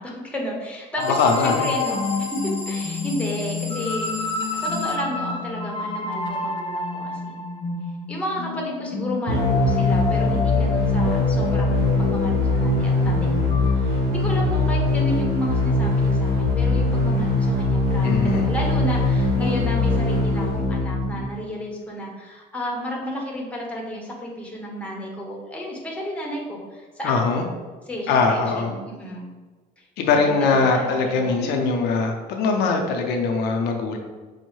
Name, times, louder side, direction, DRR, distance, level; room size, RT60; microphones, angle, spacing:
voice 1, 0.0-4.1 4.5-7.4 8.1-13.3 13.6-27.5 27.9-29.3 30.1-31.7, equal, 5° left, -2 dB, 0.9 m, -32 dB
sound 1, 1.0-13.7, left 4 dB, 30° left, 0.4 m, -29 dB
sound 2, 1.0-5.0, equal, 40° right, 1.1 m, -37 dB
voice 2, 1.2-1.7 18.0-18.5 27.0-27.4 28.1-28.7 30.0-34.0, left 4 dB, 80° left, 2 dB, 0.5 m, -21 dB
sound 3, 9.3-21.2, left 2 dB, 80° right, 0.8 m, -21 dB
5.3 x 2.1 x 3.1 m, 1.3 s
cardioid pair, 110°, 17 cm